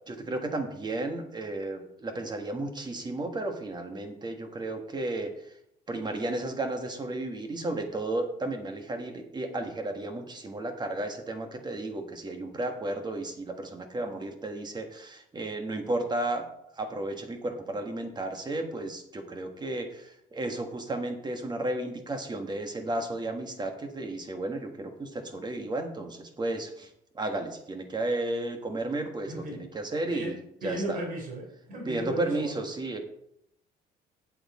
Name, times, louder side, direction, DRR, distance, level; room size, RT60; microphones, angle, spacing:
voice 1, 0.1-5.3 5.9-16.4 16.8-26.9 27.1-30.3 30.6-31.0 31.9-33.0, right 2 dB, 25° right, 5 dB, 1.5 m, -33 dB
voice 2, 29.3-29.6 30.1-30.3 30.6-32.6, right 1 dB, 55° right, -2 dB, 3.8 m, -36 dB
8.5 x 8.0 x 4.3 m, 0.75 s
cardioid pair, 110°, 17 cm